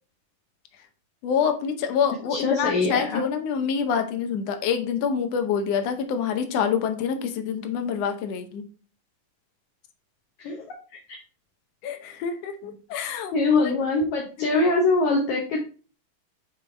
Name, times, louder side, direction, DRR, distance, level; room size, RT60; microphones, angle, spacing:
voice 1, 1.2-8.6 11.8-13.7 14.4-14.5, left 7 dB, 85° left, 6 dB, 1.4 m, -26 dB
voice 2, 2.3-3.2 10.4-10.7 11.1-11.2 13.3-15.6, left 3 dB, 70° left, 0 dB, 2.1 m, -23 dB
8.7 x 3.9 x 3.3 m, 0.38 s
omnidirectional pair, 4.1 m